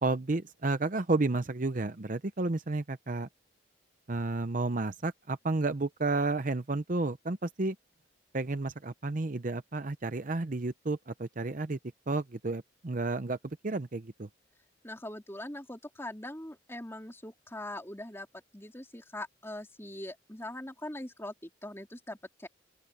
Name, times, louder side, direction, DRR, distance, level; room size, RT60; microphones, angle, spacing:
voice 1, 0.0-3.3 4.1-7.8 8.3-11.8 12.1-13.4 13.6-14.3, right 3 dB, 40° right, 0.7 m, -31 dB
voice 2, 14.8-18.3 18.5-22.5, left 1 dB, 15° left, 3.8 m, -42 dB
open air
head